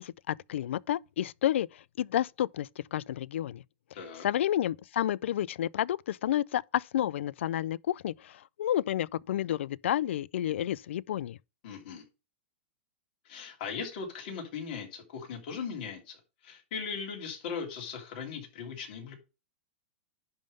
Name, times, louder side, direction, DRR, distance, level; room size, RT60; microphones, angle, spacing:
voice 1, 0.0-3.6 4.2-11.4, left 11 dB, 85° left, 0.4 m, -30 dB
voice 2, 3.9-4.3 11.6-12.0 13.2-19.1, left 6 dB, 45° left, 3.0 m, -39 dB
10.5 x 3.6 x 5.4 m
supercardioid pair, 170°, 6 cm